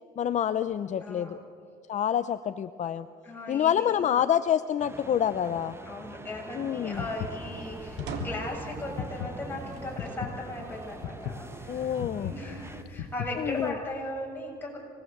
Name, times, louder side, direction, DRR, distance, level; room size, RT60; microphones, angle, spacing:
voice 1, 0.2-1.4 1.9-3.1 3.5-5.7 6.6-7.0 11.7-12.3 13.4-13.7, left 9 dB, 45° left, 11 dB, 0.7 m, -27 dB
voice 2, 1.0-1.5 3.2-4.1 5.4-14.8, left 1 dB, 10° left, -2 dB, 7.5 m, -38 dB
sound 1, 4.8-12.8, right 2 dB, 15° right, 1.4 m, -44 dB
sound 2, 6.9-13.7, left 9 dB, 75° left, 1.3 m, -38 dB
sound 3, 8.0-8.6 9.7-10.3 10.9-11.0 12.2-13.0, right 4 dB, 85° right, 3.2 m, -40 dB
26.5 x 20.0 x 8.0 m, 2.4 s
cardioid pair, 110°, 17 cm